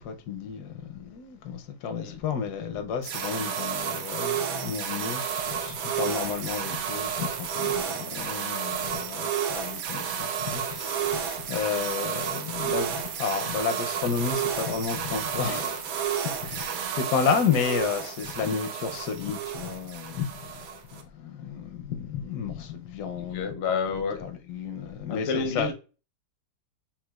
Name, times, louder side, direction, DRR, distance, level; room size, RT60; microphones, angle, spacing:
voice 1, 0.0-25.7, left 6 dB, 80° left, 1.1 m, -32 dB
sound 1, 3.0-21.0, right 8 dB, 70° right, 0.9 m, -31 dB
voice 2, 23.2-24.2 25.1-25.7, left 5 dB, 60° left, 0.6 m, -29 dB
5.9 x 2.3 x 2.2 m
omnidirectional pair, 1.7 m